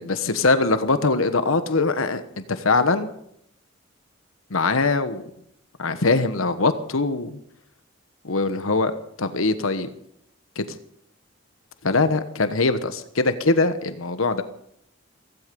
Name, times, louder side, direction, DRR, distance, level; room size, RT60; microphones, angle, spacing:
voice 1, 0.0-2.2 2.5-3.1 4.5-5.2 5.8-7.4 8.2-8.9 9.2-9.9 10.6-10.7 11.8-14.4, left 3 dB, 85° left, 10 dB, 1.2 m, -22 dB
16.0 x 16.0 x 5.3 m, 0.71 s
head